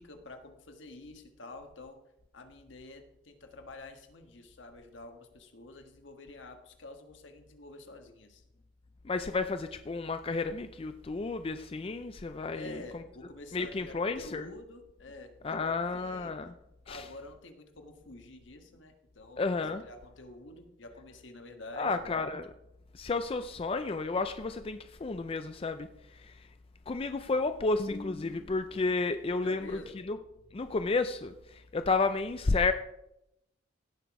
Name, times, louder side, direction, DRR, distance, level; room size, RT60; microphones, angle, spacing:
voice 1, 0.0-2.0 2.3-8.4 12.5-16.3 16.8-19.5 19.8-22.0 29.4-30.0, left 2 dB, 75° left, 5 dB, 1.5 m, -48 dB
voice 2, 9.0-13.0 13.5-14.5 15.4-16.5 16.9-17.1 19.4-19.8 21.8-22.5 22.9-26.5 26.9-29.8 30.1-30.2 30.5-32.7, left 3 dB, 30° left, 9 dB, 0.4 m, -32 dB
17.0 x 6.0 x 4.8 m, 0.84 s
head